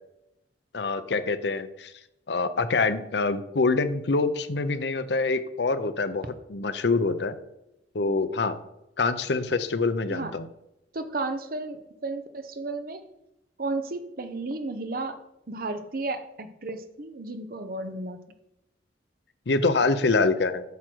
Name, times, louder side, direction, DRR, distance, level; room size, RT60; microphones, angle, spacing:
voice 1, 0.7-1.9 2.3-7.4 7.9-8.6 9.0-10.5 19.5-20.6, left 3 dB, 75° left, 11 dB, 0.7 m, -25 dB
voice 2, 10.9-13.0 13.6-15.2 15.5-18.2, right 2 dB, 55° right, 9 dB, 0.8 m, -33 dB
8.2 x 6.2 x 4.5 m, 0.85 s
head